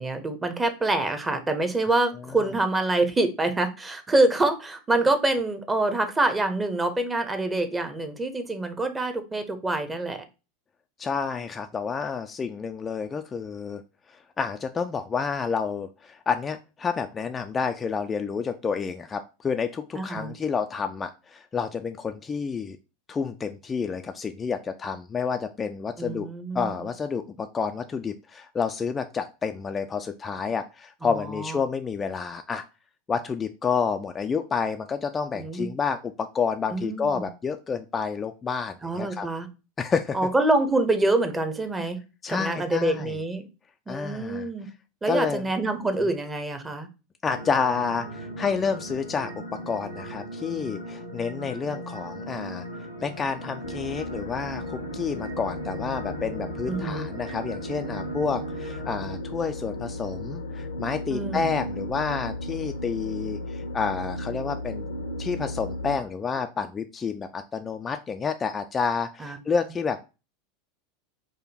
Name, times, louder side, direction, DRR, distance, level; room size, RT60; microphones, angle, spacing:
voice 1, 0.0-10.2 19.9-20.3 26.0-26.7 31.0-31.6 35.3-35.7 36.7-37.3 38.8-39.5 40.1-42.0 42.3-43.4 43.9-44.7 45.0-46.9 56.7-57.1 61.1-61.6 69.2-69.4, right 2 dB, 15° right, 0.8 m, -26 dB
voice 2, 11.0-13.8 14.4-22.8 23.1-26.3 26.5-32.6 33.1-39.3 39.8-40.2 42.2-43.2 43.9-44.5 45.1-45.4 47.2-49.3 49.7-52.7 53.0-64.9 65.2-70.0, left 5 dB, 20° left, 0.3 m, -29 dB
sound 1, 47.3-59.2, equal, 90° right, 0.8 m, -38 dB
sound 2, 53.6-66.0, left 1 dB, 75° left, 0.6 m, -35 dB
4.9 x 2.2 x 4.1 m
figure-of-eight pair, 80°, 0 cm